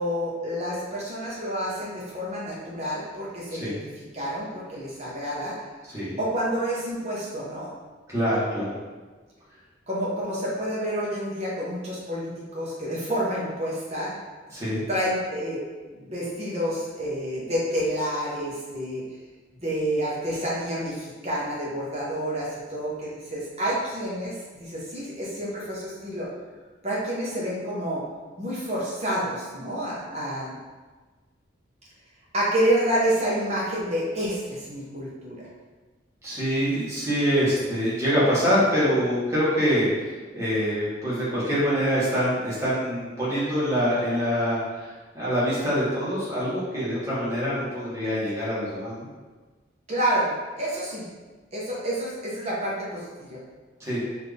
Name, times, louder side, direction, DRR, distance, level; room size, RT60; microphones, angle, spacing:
voice 1, 0.0-3.8 4.1-5.6 6.2-7.7 9.9-14.1 14.9-15.6 15.9-19.0 19.6-26.3 26.8-28.0 28.4-30.5 32.3-35.4 49.9-50.3 50.6-51.1 51.5-53.4, equal, 35° right, -6 dB, 1.0 m, -28 dB
voice 2, 8.1-8.8 14.5-14.8 36.2-49.1 53.8-54.0, equal, 15° right, -10 dB, 1.4 m, -25 dB
4.1 x 2.8 x 3.4 m, 1.3 s
head